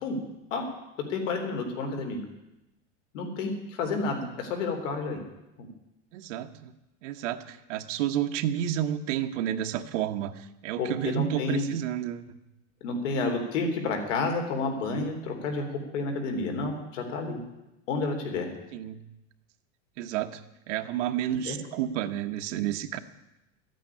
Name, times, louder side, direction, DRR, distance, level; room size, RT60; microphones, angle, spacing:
voice 1, 1.1-2.2 3.1-5.2 5.6-5.7 10.8-11.6 12.8-17.4 17.9-18.5 21.5-21.6, left 3 dB, 90° left, 3 dB, 3.8 m, -30 dB
voice 2, 6.1-6.7 7.0-12.4 18.7-19.0 20.0-20.4 20.7-23.0, right 11 dB, 75° right, 6 dB, 1.3 m, -30 dB
13.5 x 9.2 x 10.0 m, 0.94 s
supercardioid pair, 175°, 36 cm